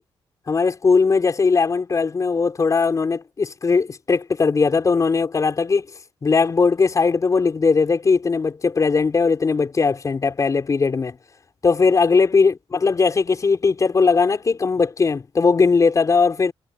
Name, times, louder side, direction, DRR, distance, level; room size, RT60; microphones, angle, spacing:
voice 1, 0.5-5.8 6.2-11.2 11.6-16.5, left 4 dB, 35° left, 4.8 m, -19 dB
cardioid pair, 135°, 10 cm